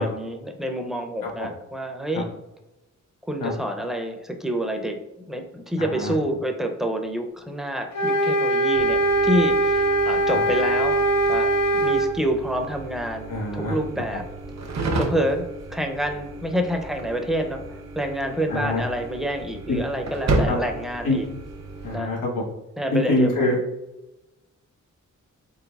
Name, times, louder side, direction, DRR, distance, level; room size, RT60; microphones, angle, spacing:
voice 1, 0.0-2.3 3.2-5.0 5.3-11.0 11.3-14.3 14.8-21.3 21.9-22.1 22.8-23.5, equal, ahead, 4 dB, 0.4 m, -28 dB
sound 1, 7.9-12.1, right 2 dB, 60° left, 0.6 m, -21 dB
sound 2, 8.7-22.0, right 2 dB, 55° right, 0.7 m, -32 dB
voice 2, 13.3-13.8 18.5-18.8 19.7-19.8 20.5-20.6 21.0-21.2 21.8-22.4 22.9-23.5, left 2 dB, 85° left, -2 dB, 1.2 m, -24 dB
4.0 x 3.6 x 2.3 m, 0.97 s
wide cardioid pair, 105°, 32 cm